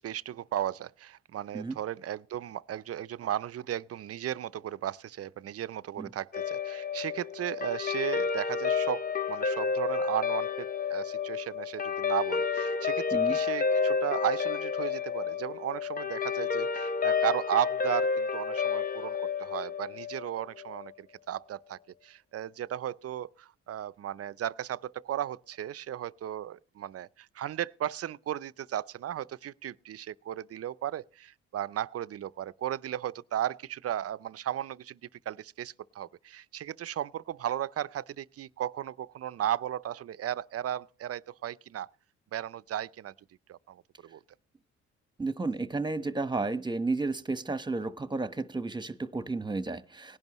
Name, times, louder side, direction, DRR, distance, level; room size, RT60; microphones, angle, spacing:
voice 1, 0.0-35.0 35.3-41.9 42.3-43.1 43.5-44.2, right 11 dB, 50° right, 0.6 m, -35 dB
Guitar, 6.3-20.9, left 6 dB, 30° left, 0.7 m, -30 dB
voice 2, 45.2-50.2, right 3 dB, 15° right, 1.2 m, -32 dB
18.5 x 10.5 x 3.1 m
supercardioid pair, 65°, 30 cm